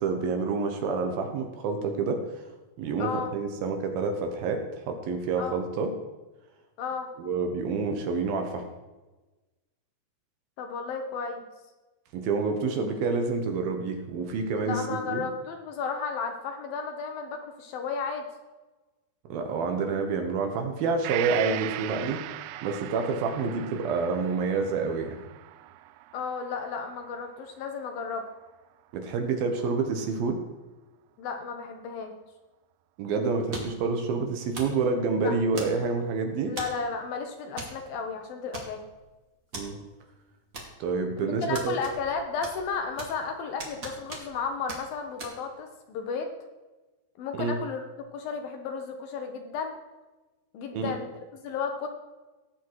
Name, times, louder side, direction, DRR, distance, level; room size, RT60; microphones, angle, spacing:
voice 1, 0.0-2.2 2.8-5.9 7.2-8.6 12.1-15.3 19.3-22.2 22.6-25.2 28.9-30.4 33.0-36.5 39.5-39.8 40.8-41.8 47.4-47.6 50.7-50.9, right 4 dB, 70° right, 5 dB, 2.8 m, -28 dB
voice 2, 3.0-3.3 5.4-5.6 6.8-7.1 10.6-11.4 14.6-18.3 26.1-28.3 31.2-32.1 35.2-35.4 36.5-38.8 41.2-46.3 47.2-47.8 48.1-49.8 50.5-51.9, left 5 dB, 70° left, 5 dB, 2.6 m, -33 dB
Gong, 21.0-28.7 29.1-29.2, right 15 dB, 90° right, 2.7 m, -39 dB
sound 1, 33.5-33.9 34.5-34.8 35.5-36.0 36.6-36.8 37.6-37.8 38.0-38.1 38.5-39.0 39.5-39.7 40.5-41.0 41.5-42.1 42.4-43.2 43.6-44.4 44.7-44.8 45.2-45.3, right 2 dB, 30° right, 1.6 m, -39 dB
18.5 x 8.0 x 4.8 m, 1.2 s
omnidirectional pair, 4.8 m